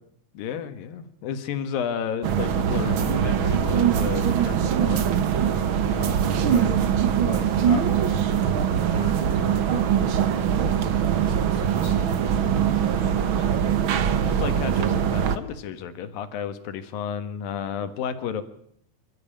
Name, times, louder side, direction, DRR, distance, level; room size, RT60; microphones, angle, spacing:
voice 1, 0.3-5.1 12.9-13.6 14.2-18.4, left 8 dB, 80° left, 10 dB, 3.3 m, -32 dB
sound 1, 2.2-15.4, right 8 dB, 75° right, 1.1 m, -22 dB
voice 2, 5.8-6.7 7.2-12.6, left 1 dB, 30° left, 3 dB, 4.8 m, -40 dB
27.5 x 13.5 x 8.7 m, 0.68 s
omnidirectional pair, 4.0 m